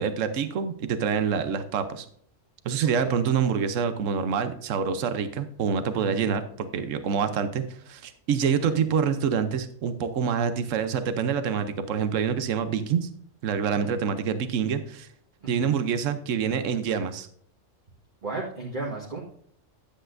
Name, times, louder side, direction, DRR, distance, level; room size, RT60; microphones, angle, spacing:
voice 1, 0.0-2.1 2.6-13.1 13.4-15.1 15.5-17.3, right 7 dB, 75° right, 10 dB, 1.1 m, -26 dB
voice 2, 3.0-3.3 5.9-6.3 8.6-8.8 13.7-14.0 15.4-15.8 18.2-19.2, right 3 dB, 40° right, -5 dB, 1.6 m, -35 dB
10.0 x 8.5 x 2.6 m, 0.64 s
omnidirectional pair, 1.3 m